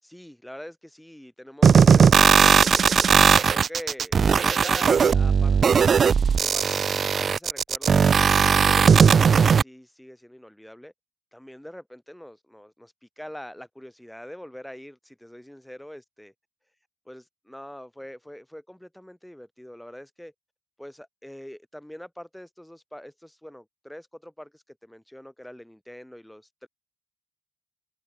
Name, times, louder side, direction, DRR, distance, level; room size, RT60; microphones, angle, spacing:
voice 1, 0.0-2.7 3.3-6.0 6.3-8.1 8.5-10.9 11.3-16.3 17.1-20.3 20.8-26.7, equal, 5° left, 7.3 m, -43 dB
sound 1, 1.6-9.6, right 6 dB, 45° right, 0.5 m, -18 dB
cardioid pair, 90°, 0 cm